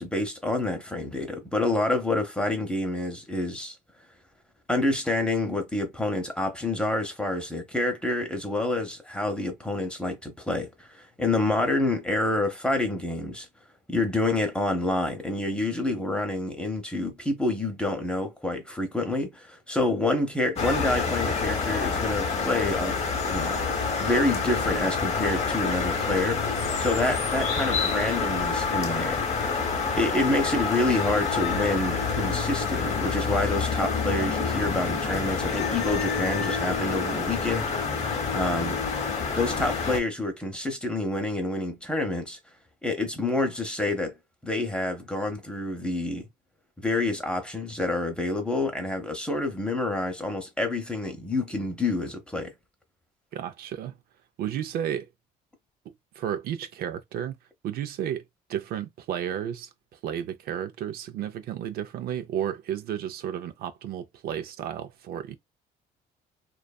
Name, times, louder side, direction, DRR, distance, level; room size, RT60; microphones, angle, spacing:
voice 1, 0.0-3.8 4.7-13.5 13.9-23.0 23.3-23.6 24.0-29.2 30.0-38.8 39.3-42.4 42.8-44.1 44.4-46.2 46.8-52.5, left 2 dB, 5° left, 0.7 m, -28 dB
sound 1, 20.6-40.0, left 5 dB, 40° left, 0.7 m, -27 dB
voice 2, 53.3-54.0 54.4-55.1 56.2-57.4 57.6-58.2 58.5-65.4, right 10 dB, 65° right, 0.4 m, -32 dB
2.5 x 2.3 x 2.2 m
cardioid pair, 110°, 17 cm